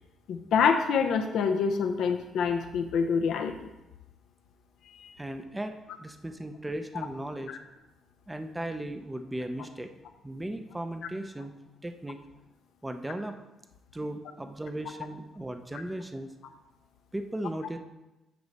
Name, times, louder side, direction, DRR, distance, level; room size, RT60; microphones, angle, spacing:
voice 1, 0.3-3.5 5.0-5.1 7.5-7.6, left 6 dB, 75° left, 5 dB, 0.6 m, -26 dB
voice 2, 5.2-7.6 8.3-9.9 10.2-11.5 11.8-12.2 12.8-13.4 13.9-16.3 17.1-17.8, right 1 dB, 10° right, 7 dB, 0.6 m, -36 dB
9.2 x 3.1 x 5.3 m, 0.99 s
cardioid pair, 90°, 0 cm